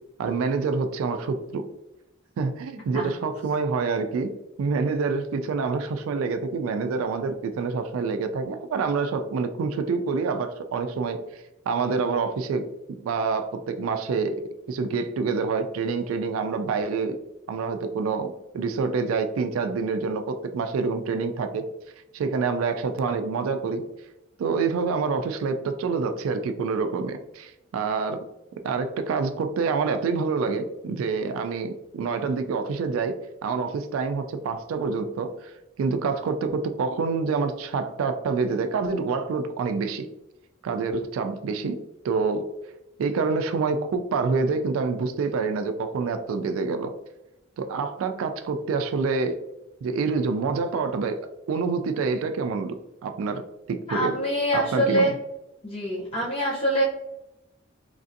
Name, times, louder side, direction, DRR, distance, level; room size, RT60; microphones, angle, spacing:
voice 1, 0.2-1.6 2.4-4.3 4.6-11.2 11.7-14.4 14.7-17.2 17.5-21.7 22.1-23.8 24.4-28.2 28.6-33.2 33.4-35.5 35.8-40.1 40.6-41.7 42.0-42.4 43.0-46.9 47.6-49.4 49.8-51.2 51.5-53.4 53.7-54.1 54.5-55.1, right 4 dB, 90° right, 9 dB, 0.3 m, -27 dB
voice 2, 53.9-55.1 55.6-56.8, equal, 30° left, -7 dB, 0.5 m, -24 dB
3.2 x 2.5 x 2.5 m, 0.93 s
head